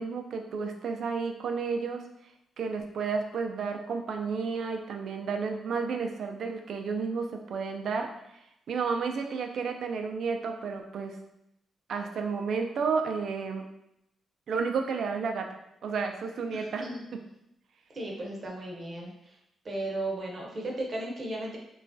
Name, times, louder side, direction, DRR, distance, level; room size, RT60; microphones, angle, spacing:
voice 1, 0.0-2.0 2.6-8.1 8.7-11.2 11.9-13.6 14.5-15.5 15.8-16.8 17.1-17.2, right 5 dB, 70° right, 4 dB, 0.3 m, -31 dB
voice 2, 16.5-16.9 17.9-19.4 19.6-21.6, right 1 dB, 45° right, -1 dB, 0.7 m, -35 dB
3.0 x 2.3 x 2.6 m, 0.83 s
cardioid pair, 85°, 0 cm